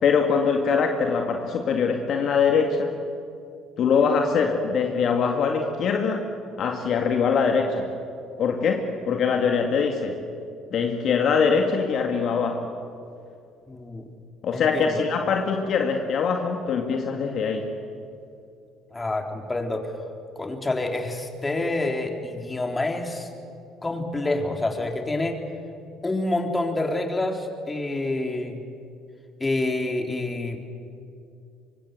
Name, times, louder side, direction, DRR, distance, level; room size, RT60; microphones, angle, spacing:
voice 1, 0.0-2.9 3.8-6.3 6.6-7.9 8.4-10.2 10.7-12.7 14.4-17.7, left 5 dB, 55° left, 3 dB, 2.1 m, -23 dB
voice 2, 13.7-14.0 14.5-14.9 18.9-19.9 20.4-23.3 23.8-25.4 26.0-28.6 29.4-30.6, left 2 dB, 20° left, 3 dB, 3.9 m, -27 dB
25.0 x 24.5 x 7.8 m, 2.5 s
hypercardioid pair, 55°, 0 cm